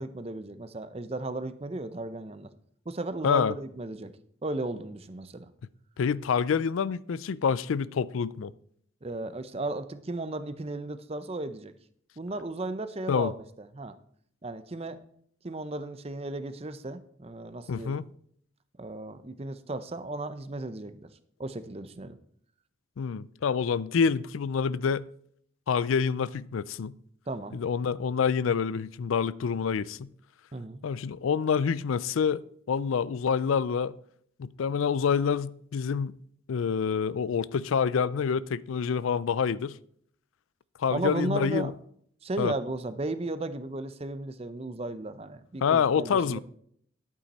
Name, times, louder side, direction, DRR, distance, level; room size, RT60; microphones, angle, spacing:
voice 1, 0.0-2.5 2.9-4.1 4.4-5.5 9.0-11.7 12.2-13.3 13.6-14.0 14.4-15.0 15.4-18.0 18.8-21.1 21.4-22.2 27.3-27.6 30.5-30.8 40.9-41.8 42.2-46.4, right 2 dB, 30° right, 0.6 m, -35 dB
voice 2, 6.0-8.5 13.1-13.3 17.7-18.0 23.0-25.0 25.7-26.9 27.5-30.1 30.8-34.0 34.4-36.1 36.5-39.8 40.8-41.7 42.4-42.5 45.6-46.4, left 6 dB, 85° left, 0.4 m, -27 dB
11.5 x 8.4 x 4.2 m
head